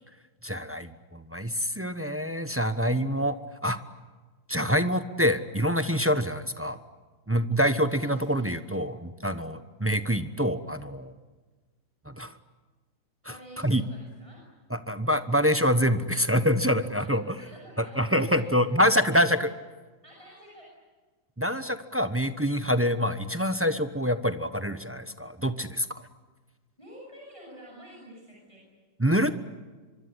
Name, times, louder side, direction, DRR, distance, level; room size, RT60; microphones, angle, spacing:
voice 1, 0.4-3.4 3.6-3.8 4.5-6.8 7.3-11.1 12.1-12.3 13.2-13.4 13.6-13.8 14.7-17.4 17.8-19.5 21.4-25.9 29.0-29.4, equal, 15° right, 10 dB, 0.5 m, -26 dB
voice 2, 7.9-8.5 13.3-14.4 17.0-17.1 17.4-18.5 19.3-19.4 20.0-20.7 26.8-28.6, right 1 dB, 15° left, -3 dB, 8.2 m, -48 dB
25.0 x 24.5 x 9.9 m, 1.3 s
omnidirectional pair, 2.1 m